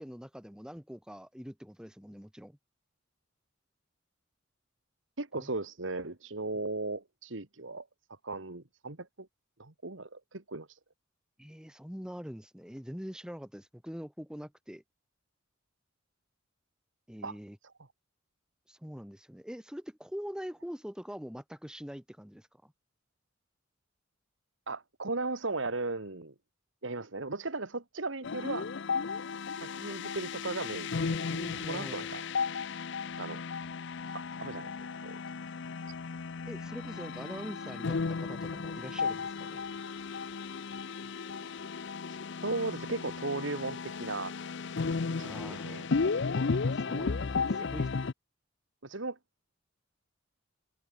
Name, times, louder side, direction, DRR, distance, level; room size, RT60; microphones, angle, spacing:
voice 1, 0.0-2.6 5.3-5.5 11.4-14.8 17.1-17.6 18.7-22.7 31.3-32.1 36.4-39.6 45.2-45.9 46.5-47.9, equal, 5° right, 1.4 m, -44 dB
voice 2, 5.2-7.9 8.2-9.3 9.6-10.8 17.2-17.4 24.7-26.3 26.8-28.7 29.5-31.3 31.7-32.2 33.2-33.4 34.1-34.7 35.0-35.2 42.1-44.3 45.2-45.8 48.8-49.2, right 3 dB, 70° right, 2.0 m, -37 dB
sound 1, 28.2-48.1, left 4 dB, 60° left, 0.6 m, -34 dB
head